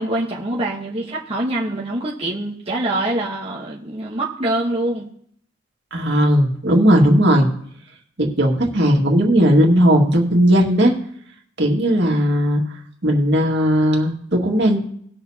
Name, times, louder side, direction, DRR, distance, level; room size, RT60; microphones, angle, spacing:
voice 1, 0.0-5.0, right 1 dB, 30° right, -5 dB, 1.2 m, -24 dB
voice 2, 5.9-7.5 8.2-10.9 11.6-12.6 13.0-14.8, equal, 60° right, 0 dB, 2.0 m, -16 dB
19.5 x 6.7 x 2.8 m, 0.65 s
head